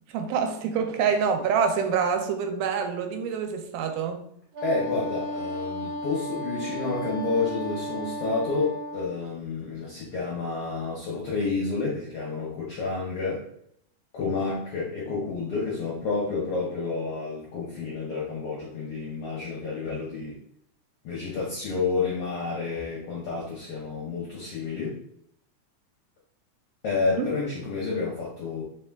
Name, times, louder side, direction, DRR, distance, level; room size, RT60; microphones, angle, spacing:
voice 1, 0.1-4.2 27.2-27.3, right 6 dB, 85° right, 2.1 m, -26 dB
Wind instrument woodwind instrument, 4.5-9.2, equal, 70° right, 1.6 m, -34 dB
voice 2, 4.6-13.4 14.1-20.4 21.0-25.0 26.8-28.6, left 4 dB, 80° left, 1.2 m, -30 dB
4.8 x 2.3 x 3.4 m
omnidirectional pair, 3.5 m